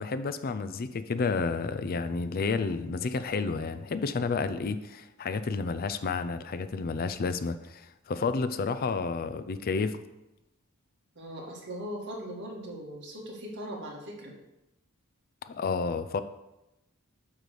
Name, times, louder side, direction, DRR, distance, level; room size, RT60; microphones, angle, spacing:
voice 1, 0.0-10.0 15.5-16.2, left 4 dB, 45° left, 11 dB, 0.4 m, -31 dB
voice 2, 11.2-14.3, equal, 55° right, -2 dB, 1.8 m, -39 dB
9.1 x 3.2 x 6.6 m, 0.92 s
head